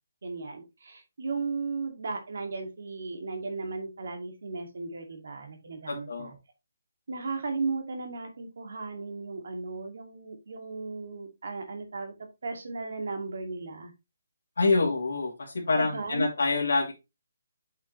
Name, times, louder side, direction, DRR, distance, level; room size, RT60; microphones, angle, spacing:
voice 1, 0.2-6.3 7.1-12.1 12.4-13.9 15.7-16.3, right 4 dB, 55° right, 4 dB, 2.2 m, -35 dB
voice 2, 5.9-6.3 14.6-16.9, left 3 dB, 75° left, -2 dB, 2.6 m, -26 dB
7.8 x 5.7 x 3.1 m, 0.25 s
hypercardioid pair, 175°, 0 cm